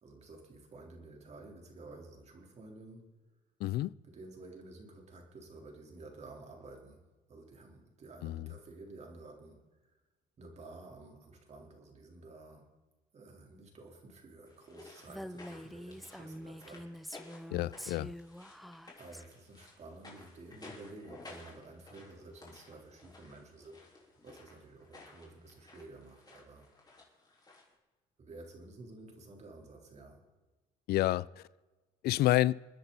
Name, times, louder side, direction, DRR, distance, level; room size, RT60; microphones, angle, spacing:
voice 1, 0.0-3.1 4.0-10.0 10.4-12.8 13.1-16.9 19.0-23.9 24.2-26.7 28.2-30.3, right 2 dB, 40° right, 3.8 m, -52 dB
voice 2, 3.6-3.9 8.2-8.5 17.5-18.1 30.9-31.3 32.0-32.5, left 16 dB, 70° left, 0.4 m, -28 dB
sound 1, 14.5-27.7, left 3 dB, 25° left, 4.0 m, -55 dB
Female speech woman speaking, 15.1-19.2, equal, ahead, 0.5 m, -46 dB
28.5 x 10.0 x 4.1 m
cardioid pair, 110°, 17 cm